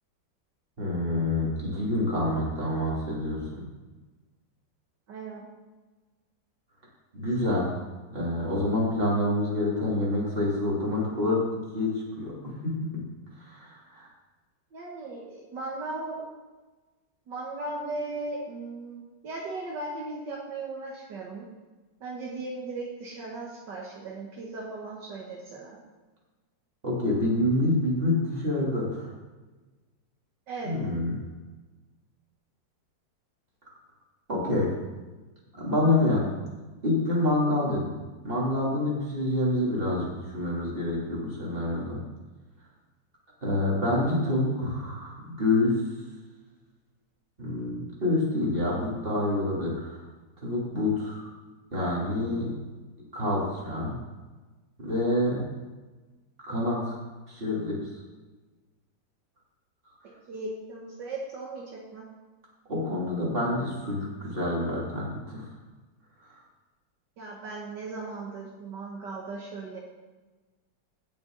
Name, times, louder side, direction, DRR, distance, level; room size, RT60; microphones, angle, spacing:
voice 1, 0.8-3.6 7.1-7.7 8.1-12.9 13.4-14.1 26.8-29.1 30.6-31.2 34.3-34.7 35.6-36.2 36.8-42.0 43.4-45.7 47.4-50.0 50.4-51.3 51.7-52.5 53.1-53.9 54.8-55.4 56.4-57.0 57.3-57.8 62.7-65.5, left 1 dB, 30° right, -5 dB, 3.2 m, -27 dB
voice 2, 5.1-5.5 14.7-16.2 17.3-21.5 22.0-25.8 30.5-30.7 60.3-62.0 67.2-69.8, right 3 dB, 70° right, -2 dB, 1.9 m, -37 dB
16.0 x 7.0 x 3.9 m, 1.2 s
omnidirectional pair, 2.0 m